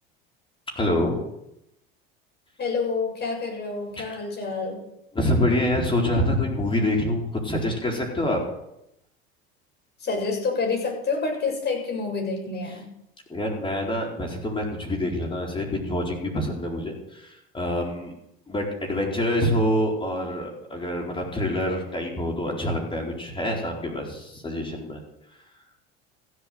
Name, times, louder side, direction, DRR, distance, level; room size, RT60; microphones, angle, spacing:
voice 1, 0.8-1.2 4.0-4.2 5.1-8.4 13.3-18.1 18.5-25.0, left 1 dB, 15° left, 0 dB, 4.3 m, -26 dB
voice 2, 2.6-4.8 10.0-12.9, left 4 dB, 35° left, 1 dB, 7.1 m, -28 dB
15.5 x 8.2 x 8.0 m, 0.83 s
hypercardioid pair, 90°, 30 cm